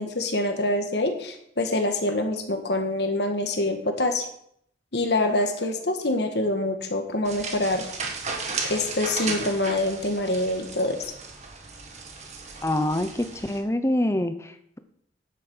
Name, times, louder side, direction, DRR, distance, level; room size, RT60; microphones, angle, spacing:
voice 1, 0.0-4.3 4.9-7.8 8.7-11.1, left 1 dB, 60° left, 5 dB, 1.6 m, -25 dB
sound 1, 7.2-13.6, right 4 dB, 35° right, 1.6 m, -35 dB
voice 2, 12.6-14.8, left 1 dB, 15° left, 9 dB, 0.8 m, -26 dB
10.0 x 8.4 x 6.2 m, 0.69 s
head